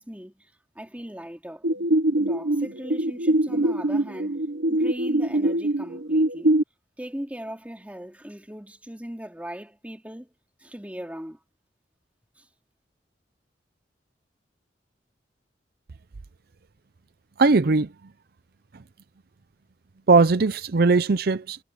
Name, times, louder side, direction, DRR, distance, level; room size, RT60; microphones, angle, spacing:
voice 1, 0.0-1.7 2.3-4.4 4.7-6.6 7.0-10.3 10.6-11.4 12.4-12.5, equal, 10° right, 2.6 m, -39 dB
sound 1, 1.6-6.6, right 1 dB, 90° right, 1.3 m, -23 dB
voice 2, 17.4-17.9 20.1-21.6, right 3 dB, 55° right, 0.6 m, -19 dB
head